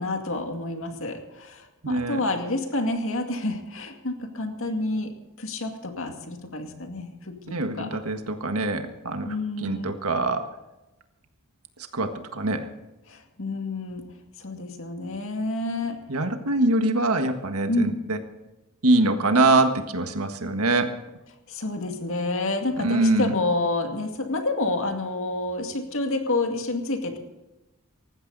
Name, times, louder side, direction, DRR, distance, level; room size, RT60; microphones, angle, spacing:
voice 1, 0.0-8.0 9.2-9.9 13.1-14.0 14.4-16.0 17.7-18.0 21.5-27.2, left 2 dB, 65° left, 4 dB, 2.3 m, -29 dB
voice 2, 1.8-2.2 7.5-9.3 9.6-10.5 11.9-12.7 16.1-18.2 18.8-20.9 22.8-23.3, right 2 dB, 80° right, 7 dB, 1.6 m, -23 dB
18.5 x 15.0 x 4.1 m, 1.0 s
head